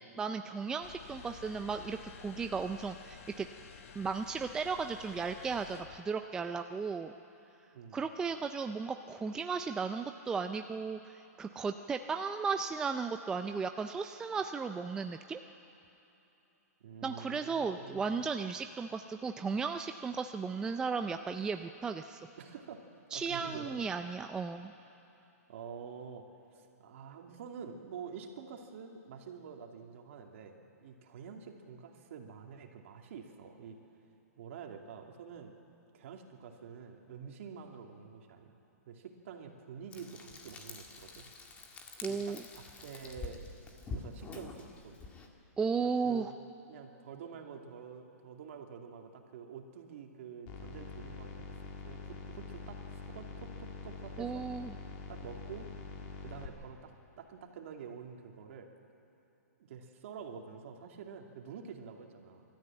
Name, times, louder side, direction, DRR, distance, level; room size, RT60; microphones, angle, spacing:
voice 1, 0.2-3.5 4.0-7.1 7.9-15.4 17.0-22.2 23.1-24.7 42.0-42.4 45.6-46.3 54.2-54.8, right 5 dB, 10° right, 7 dB, 0.4 m, -35 dB
sound 1, 0.8-6.0, left 7 dB, 55° left, 1.5 m, -52 dB
voice 2, 7.7-8.0 16.8-18.3 22.4-22.8 23.1-23.8 25.5-26.3 26.5-33.8 34.4-35.5 35.9-38.6 38.9-41.3 42.1-43.4 43.9-45.0 46.0-46.3 46.7-51.5 51.8-54.5 55.1-55.7 56.2-56.9 57.2-58.7 59.7-62.4, right 6 dB, 55° right, 2 dB, 2.6 m, -48 dB
Frying (food), 39.9-45.3, left 3 dB, 15° left, 1.8 m, -46 dB
sound 2, 50.5-56.5, left 4 dB, 35° left, 2.6 m, -45 dB
25.0 x 13.5 x 8.9 m, 3.0 s
hypercardioid pair, 155°, 9 cm